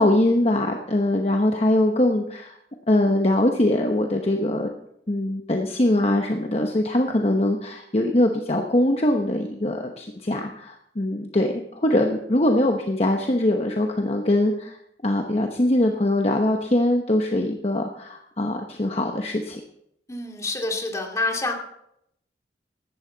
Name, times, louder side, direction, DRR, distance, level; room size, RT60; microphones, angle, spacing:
voice 1, 0.0-2.5 2.9-4.7 5.1-14.8 15.0-19.6, left 1 dB, 35° left, 3 dB, 1.0 m, -22 dB
voice 2, 20.1-21.5, left 2 dB, 20° left, 1 dB, 2.4 m, -27 dB
15.5 x 12.0 x 4.0 m, 0.76 s
head